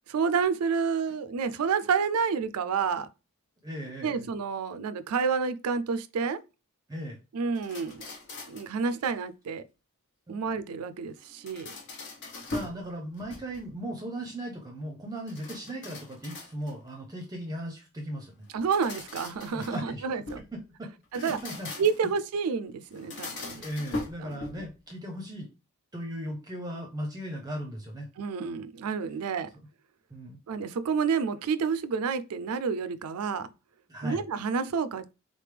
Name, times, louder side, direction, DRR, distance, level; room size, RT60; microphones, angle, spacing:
voice 1, 0.1-3.1 4.0-6.4 7.3-8.1 8.5-9.6 10.3-11.8 18.5-20.4 21.1-21.4 21.8-23.7 24.2-24.4 28.2-29.5 30.5-33.5 34.0-35.2, right 5 dB, 80° right, 0.4 m, -29 dB
voice 2, 3.6-4.3 6.9-7.2 10.3-10.4 12.5-18.4 19.5-20.0 20.4-21.7 23.5-25.5 25.9-28.1 30.1-30.4 33.9-34.2, equal, 15° right, 0.6 m, -37 dB
sound 1, 7.6-8.8 11.2-12.8 13.2-13.8 15.3-16.9 18.5-20.5 21.0-22.2 22.9-24.8, left 2 dB, 55° left, 1.0 m, -40 dB
3.9 x 3.3 x 3.3 m
head